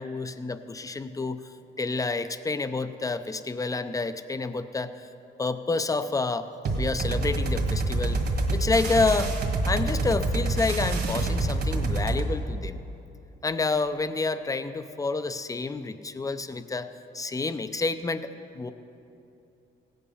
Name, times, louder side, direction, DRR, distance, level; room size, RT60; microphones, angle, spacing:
voice 1, 0.0-1.4 1.8-5.1 5.4-6.5 6.8-8.2 8.5-9.3 9.7-12.8 13.4-18.7, left 3 dB, 15° left, 11 dB, 0.5 m, -29 dB
sound 1, 6.6-12.3, right 2 dB, 50° right, 1.9 m, -26 dB
16.5 x 8.4 x 5.6 m, 2.8 s
cardioid pair, 90°, 20 cm